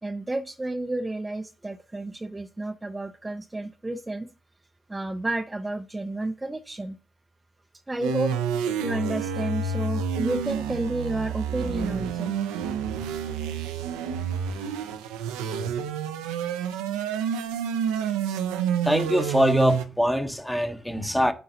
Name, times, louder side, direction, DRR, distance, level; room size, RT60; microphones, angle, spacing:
voice 1, 0.0-4.3 4.9-7.0 7.9-8.3 8.8-12.3, right 2 dB, 20° right, 0.5 m, -31 dB
sound 1, 8.0-19.8, right 7 dB, 90° right, 0.5 m, -29 dB
voice 2, 18.8-21.3, equal, 5° left, 0.9 m, -23 dB
9.8 x 3.8 x 2.7 m
hypercardioid pair, 45°, 0 cm